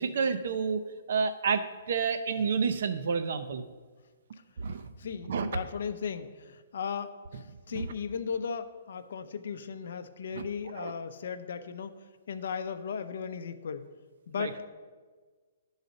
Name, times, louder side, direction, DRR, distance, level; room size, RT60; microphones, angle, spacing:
voice 1, 0.0-3.7 4.6-4.8 5.3-5.5 7.7-7.8 10.3-10.4 10.8-10.9 14.4-14.5, right 5 dB, 55° right, 9 dB, 0.5 m, -30 dB
voice 2, 5.0-11.9 12.3-13.9 14.3-14.7, left 6 dB, 60° left, 10 dB, 0.5 m, -36 dB
12.0 x 4.0 x 5.1 m, 1.5 s
hypercardioid pair, 165°, 0 cm